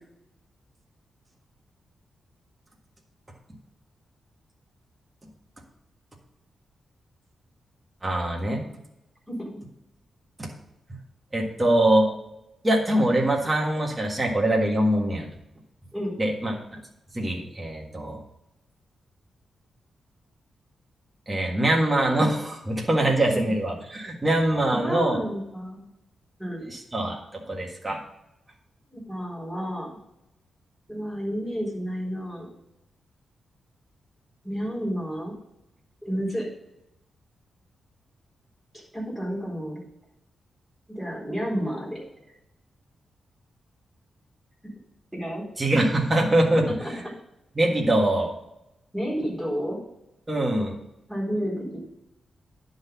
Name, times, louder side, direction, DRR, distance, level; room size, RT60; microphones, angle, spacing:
voice 1, 8.0-8.6 10.4-10.5 11.3-12.1 12.6-15.3 16.2-16.6 17.1-18.2 21.3-25.2 26.7-28.0 45.6-46.6 47.6-48.3 50.3-50.7, right 1 dB, 20° right, -1 dB, 1.6 m, -23 dB
voice 2, 24.7-25.8 26.4-26.6 28.9-30.0 30.9-32.5 34.4-35.3 36.0-36.5 38.9-39.8 40.9-42.0 45.1-45.4 46.8-46.9 48.9-49.8 51.1-51.8, equal, ahead, -6 dB, 4.0 m, -30 dB
10.0 x 4.0 x 6.9 m, 0.86 s
wide cardioid pair, 135°, 0 cm